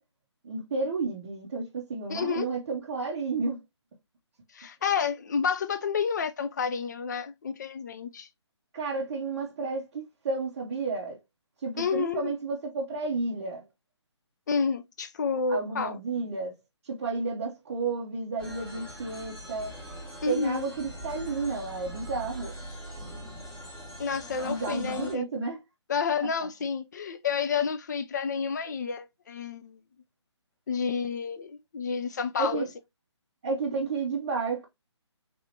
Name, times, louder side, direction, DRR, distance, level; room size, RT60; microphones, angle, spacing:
voice 1, 0.4-3.6 8.7-11.2 11.6-13.6 15.5-16.5 16.8-19.7 20.3-22.5 24.4-25.6 32.4-32.7 33.4-34.7, right 4 dB, 30° right, 0.5 m, -31 dB
voice 2, 2.1-2.5 4.5-8.3 11.8-12.3 14.5-16.0 20.2-20.7 24.0-25.2 25.9-29.8 30.7-32.6, left 6 dB, 40° left, 0.4 m, -30 dB
sound 1, 18.4-25.1, equal, 10° left, 0.9 m, -42 dB
3.3 x 2.7 x 2.6 m
figure-of-eight pair, 155°, 15 cm